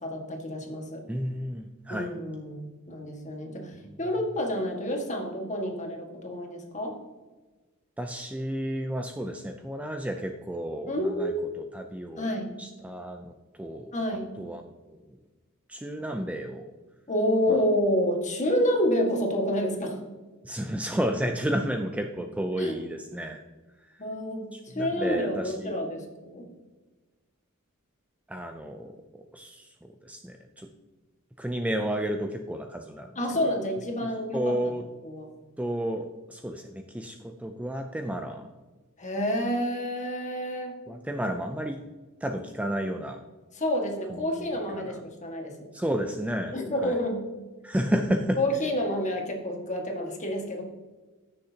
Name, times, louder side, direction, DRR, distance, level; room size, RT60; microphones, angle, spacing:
voice 1, 0.0-1.0 1.9-6.9 10.9-11.4 12.2-12.6 13.9-14.3 17.1-20.0 22.6-22.8 24.0-26.5 33.2-34.6 35.0-35.3 39.0-40.8 43.5-45.7 46.5-47.2 48.4-50.6, equal, 35° left, 1 dB, 1.8 m, -29 dB
voice 2, 1.1-2.1 3.9-4.0 8.0-12.3 12.6-13.2 13.6-13.9 14.4-14.6 14.9-15.2 15.7-16.7 17.5-17.6 20.4-23.4 23.9-24.0 24.5-25.7 28.3-29.0 29.3-29.7 30.0-30.7 31.4-33.6 34.0-34.8 35.6-38.5 40.9-41.8 42.2-43.2 44.1-44.5 44.7-45.0 45.7-47.0 47.6-48.4, equal, 5° right, 5 dB, 0.4 m, -32 dB
15.5 x 6.5 x 2.9 m, 1.2 s
head